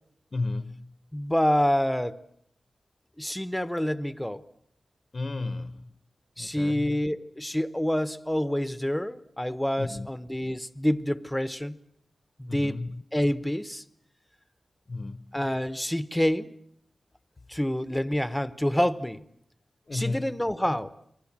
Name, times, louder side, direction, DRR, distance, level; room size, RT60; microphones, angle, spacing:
voice 1, 0.3-0.9 5.1-5.8 6.4-7.0 9.8-10.1 12.5-13.0 14.9-15.3 19.9-20.3, left 3 dB, 45° left, 1.0 m, -33 dB
voice 2, 1.1-2.2 3.2-4.4 6.4-11.8 12.4-12.8 13.1-13.8 15.3-16.5 17.5-19.2 19.9-20.9, left 1 dB, 5° left, 1.0 m, -27 dB
29.0 x 22.0 x 7.4 m
wide cardioid pair, 70°, 0 cm